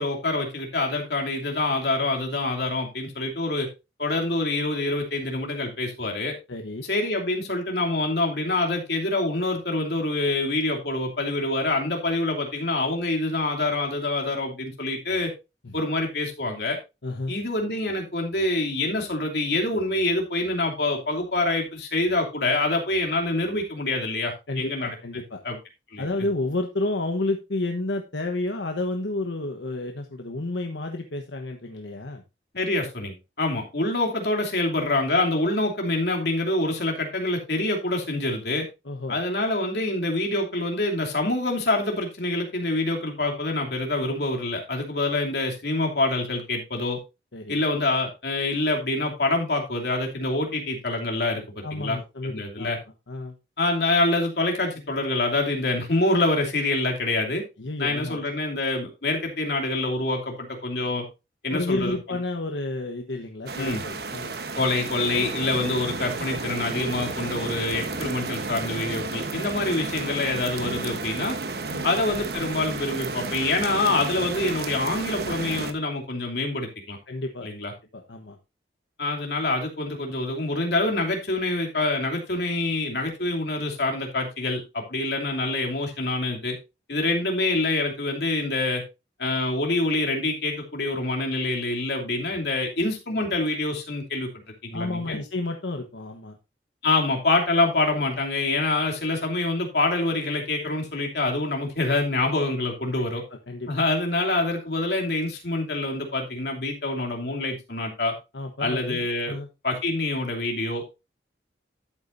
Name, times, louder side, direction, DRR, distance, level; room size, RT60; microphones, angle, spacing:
voice 1, 0.0-3.7 4.0-6.3 6.9-15.3 15.7-16.8 17.3-24.9 25.4-25.6 25.9-26.0 32.5-38.7 39.1-47.0 47.5-52.0 52.2-52.8 53.6-57.4 57.8-61.0 61.4-61.9 63.6-63.8 64.6-71.4 71.8-77.0 77.4-77.7 79.0-86.6 86.9-88.8 89.2-94.3 94.6-95.2 96.8-103.2 103.7-108.1 108.6-109.3 109.6-110.8, left 2 dB, 65° left, 1 dB, 2.8 m, -26 dB
voice 2, 6.5-6.9 15.6-15.7 17.0-17.3 24.5-25.4 26.0-32.2 38.8-39.2 47.3-47.6 51.6-52.7 53.1-53.4 57.6-58.2 61.5-64.3 71.7-71.9 77.1-77.5 77.9-78.4 94.7-96.4 103.5-103.7 108.3-109.5, left 2 dB, 90° left, 4 dB, 1.1 m, -31 dB
sound 1, 63.5-75.7, right 3 dB, 60° right, 1.1 m, -32 dB
12.5 x 8.3 x 2.6 m, 0.26 s
head